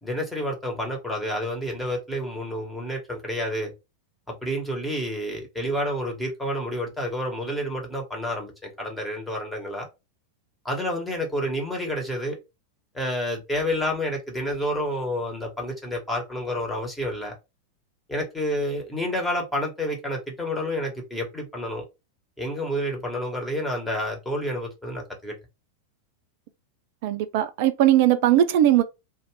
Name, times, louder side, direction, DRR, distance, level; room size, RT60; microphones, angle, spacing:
voice 1, 0.0-3.7 4.4-9.9 10.6-12.4 12.9-17.3 18.1-21.8 22.4-25.3, equal, 10° left, 1.1 m, -29 dB
voice 2, 27.0-28.8, right 12 dB, 50° right, 0.4 m, -19 dB
2.5 x 2.3 x 3.2 m
figure-of-eight pair, 90°, 0 cm